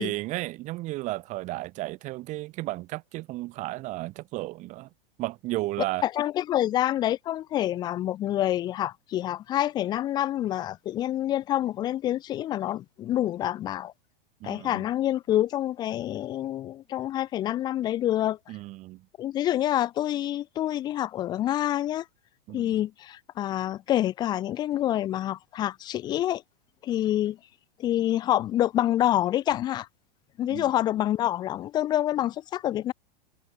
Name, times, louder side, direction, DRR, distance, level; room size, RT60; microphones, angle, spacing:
voice 1, 0.0-4.9 5.2-6.0 14.4-14.8 18.5-19.1 22.5-22.8 30.5-30.7, right 19 dB, 25° right, 0.7 m, -33 dB
voice 2, 6.0-13.9 14.4-18.4 19.2-22.0 22.5-26.4 26.8-27.4 27.8-29.9 30.4-32.9, left 12 dB, 15° left, 0.4 m, -27 dB
supercardioid pair, 155°, 30 cm